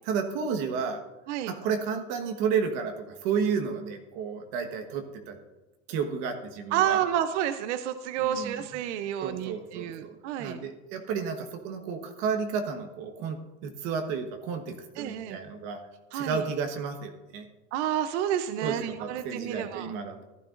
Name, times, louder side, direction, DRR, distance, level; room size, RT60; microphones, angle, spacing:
voice 1, 0.1-1.0 1.5-5.4 5.9-7.0 8.2-8.6 9.2-15.8 16.1-17.4 18.6-20.2, right 6 dB, 45° right, 4 dB, 1.4 m, -32 dB
voice 2, 6.7-10.6 15.0-15.4 16.1-16.4 17.7-19.9, right 10 dB, 70° right, 10 dB, 0.7 m, -30 dB
15.0 x 12.0 x 2.5 m, 1.1 s
supercardioid pair, 160°, 37 cm